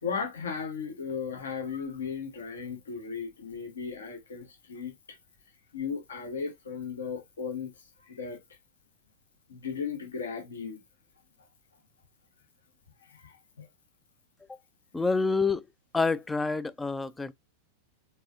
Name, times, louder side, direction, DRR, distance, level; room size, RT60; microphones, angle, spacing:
voice 1, 0.0-5.2 5.7-8.4 9.5-10.8 13.1-13.7, left 6 dB, 70° left, 1.3 m, -36 dB
voice 2, 14.9-15.6 15.9-17.3, left 4 dB, 10° left, 0.4 m, -27 dB
4.7 x 3.8 x 2.5 m
figure-of-eight pair, 90°, 0 cm